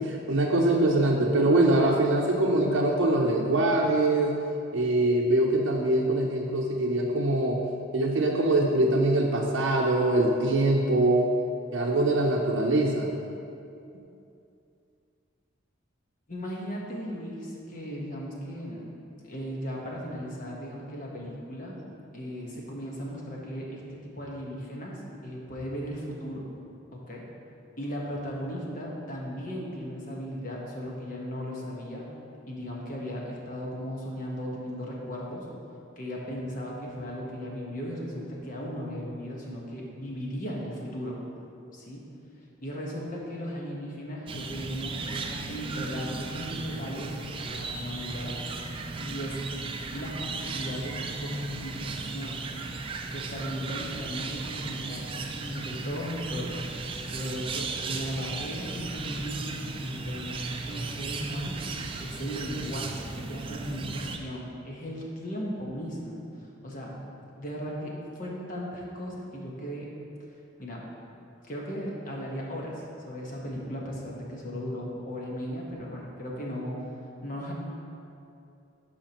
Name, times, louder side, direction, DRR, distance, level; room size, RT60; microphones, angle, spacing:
voice 1, 0.0-4.4 4.7-7.6 7.9-11.3 11.7-13.1, right 1 dB, 75° right, -2 dB, 0.6 m, -23 dB
voice 2, 16.3-18.9 19.2-21.8 22.1-26.4 26.9-27.2 27.8-32.1 32.5-35.5 36.0-41.2 41.7-42.1 42.6-47.1 47.4-48.4 49.0-49.4 49.9-52.4 53.1-56.6 57.1-61.5 62.0-66.2 66.6-66.9 67.4-69.9 70.6-70.8 71.4-76.8 77.2-77.5, equal, 45° left, -3 dB, 1.2 m, -36 dB
sound 1, 44.3-64.2, right 3 dB, 25° right, 0.4 m, -36 dB
12.0 x 5.0 x 3.0 m, 2.7 s
head